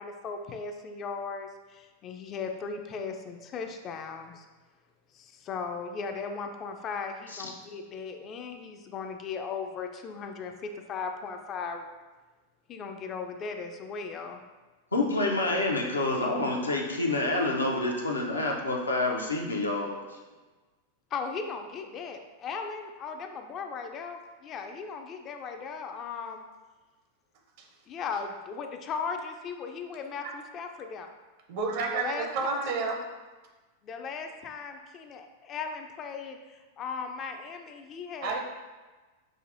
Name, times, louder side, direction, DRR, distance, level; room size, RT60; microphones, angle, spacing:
voice 1, 0.0-4.5 5.1-11.9 12.7-14.4 21.1-26.4 27.9-31.1 31.9-32.7 33.8-38.4, left 5 dB, 30° left, 5 dB, 0.4 m, -37 dB
voice 2, 14.9-20.0, left 2 dB, 80° left, 0 dB, 0.6 m, -28 dB
voice 3, 31.5-33.0 38.2-38.4, right 4 dB, 50° right, 1 dB, 0.7 m, -30 dB
6.2 x 2.6 x 2.6 m, 1.2 s
figure-of-eight pair, 90°, 0 cm